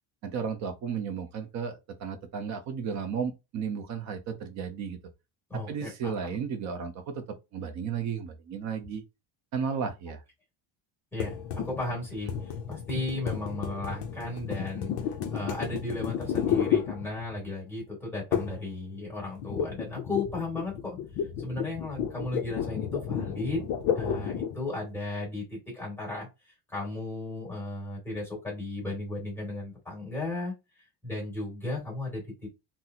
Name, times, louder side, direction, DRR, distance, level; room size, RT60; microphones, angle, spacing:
voice 1, 0.2-5.0 5.7-9.0 9.5-10.2, right 6 dB, 40° right, 0.5 m, -34 dB
voice 2, 5.5-6.4 11.1-11.4 11.6-14.9 15.3-21.0 21.4-23.7 24.0-30.5 31.0-32.2, left 2 dB, 5° left, 2.1 m, -35 dB
sound 1, 11.2-17.5 18.3-18.7 18.9-24.6, left 8 dB, 45° left, 0.4 m, -32 dB
3.9 x 2.0 x 2.7 m
cardioid pair, 180°, 47 cm